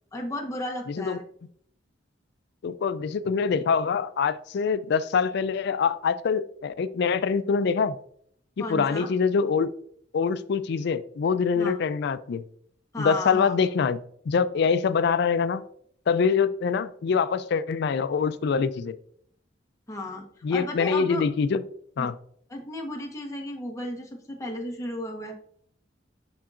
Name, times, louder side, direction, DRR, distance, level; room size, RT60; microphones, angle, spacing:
voice 1, 0.1-1.2 8.6-9.1 11.5-11.8 12.9-13.7 19.9-21.2 22.0-22.1 22.5-25.4, left 1 dB, 15° left, 0 dB, 1.0 m, -34 dB
voice 2, 2.6-8.0 8.7-9.7 10.1-12.4 13.0-14.0 14.3-15.6 16.1-18.9 20.4-21.6 22.0-22.1, left 5 dB, 60° left, 14 dB, 0.4 m, -24 dB
10.0 x 3.8 x 2.5 m, 0.65 s
head